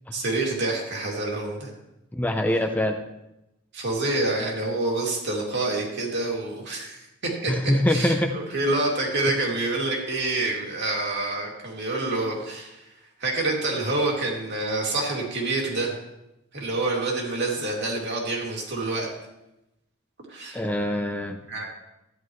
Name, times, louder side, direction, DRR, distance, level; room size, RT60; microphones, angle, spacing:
voice 1, 0.1-1.7 3.7-7.0 7.4-7.5 7.9-12.8 13.2-15.9 16.5-19.1 20.3-20.6 21.5-21.7, right 2 dB, 60° right, -1 dB, 2.6 m, -27 dB
voice 2, 2.1-3.0 7.5-8.3 20.5-21.4, left 1 dB, 10° left, 5 dB, 0.6 m, -24 dB
12.5 x 10.0 x 3.1 m, 0.91 s
head